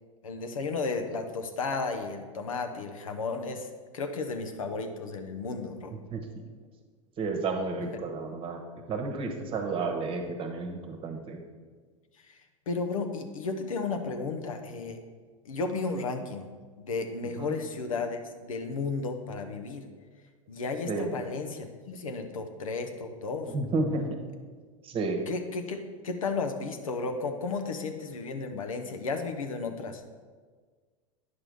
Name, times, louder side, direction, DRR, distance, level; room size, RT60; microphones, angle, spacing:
voice 1, 0.2-3.7 3.9-5.9 12.2-12.4 12.7-15.0 15.4-16.5 16.8-19.9 20.5-23.5 25.3-30.0, left 4 dB, 75° left, 6 dB, 0.8 m, -33 dB
voice 2, 7.2-8.6 8.9-11.4 17.4-17.5 20.9-21.1 23.5-24.2 24.8-25.2, right 3 dB, 30° right, 4 dB, 1.1 m, -31 dB
9.5 x 6.0 x 3.5 m, 1.5 s
hypercardioid pair, 90°, 17 cm